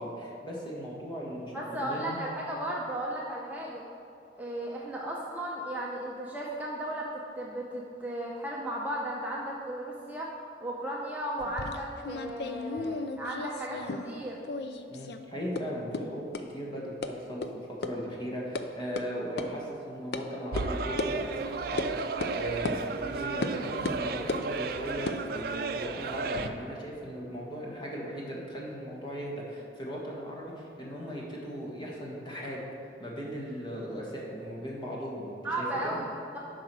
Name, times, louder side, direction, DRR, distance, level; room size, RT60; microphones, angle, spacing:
voice 1, 0.0-2.2 14.9-32.7 33.0-36.0, equal, 25° left, -3 dB, 1.6 m, -38 dB
voice 2, 1.5-3.8 4.4-10.3 10.6-14.4 35.4-36.4, right 1 dB, 10° right, -4 dB, 0.7 m, -35 dB
sound 1, 11.4-14.2 14.5-15.2 15.6-15.7 15.9-16.0 16.3-16.4 17.0-17.1 17.4-17.5 17.8-17.9 18.3-18.6 19.0-19.1 19.4-19.5 20.1-20.2 20.6-20.7 21.0-21.1 21.8-21.9 22.2-22.4 22.7-22.8 23.4-23.6 23.9-24.5 25.0-26.5, left 3 dB, 60° left, 0.5 m, -35 dB
sound 2, 20.5-26.5, right 4 dB, 55° right, 0.4 m, -34 dB
9.7 x 4.9 x 6.2 m, 2.7 s
head